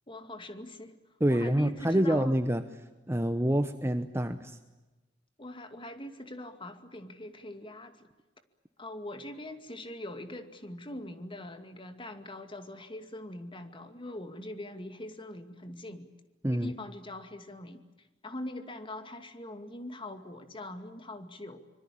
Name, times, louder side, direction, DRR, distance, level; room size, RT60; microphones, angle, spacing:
voice 1, 0.1-1.0 1.3-2.3 5.4-8.1 8.8-16.1 16.5-21.7, left 1 dB, 30° left, 8 dB, 2.3 m, -42 dB
voice 2, 1.2-2.6 3.1-4.6 16.4-16.7, right 1 dB, 15° right, 9 dB, 1.0 m, -27 dB
25.5 x 23.5 x 8.7 m, 1.1 s
head